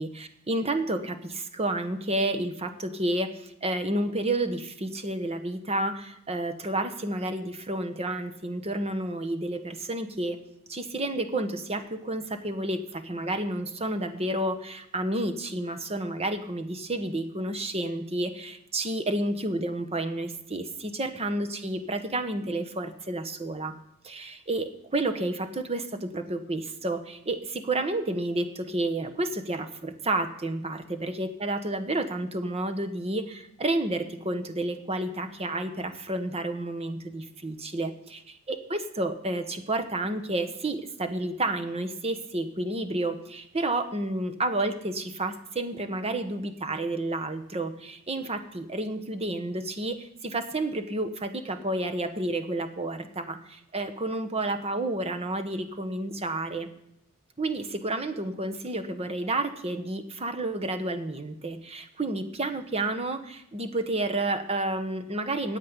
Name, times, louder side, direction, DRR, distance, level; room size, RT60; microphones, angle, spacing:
voice 1, 0.0-10.4 10.7-23.7 24.0-38.2 38.5-56.7 57.4-65.6, right 2 dB, 30° right, 8 dB, 1.1 m, -30 dB
9.5 x 8.5 x 9.6 m, 0.77 s
head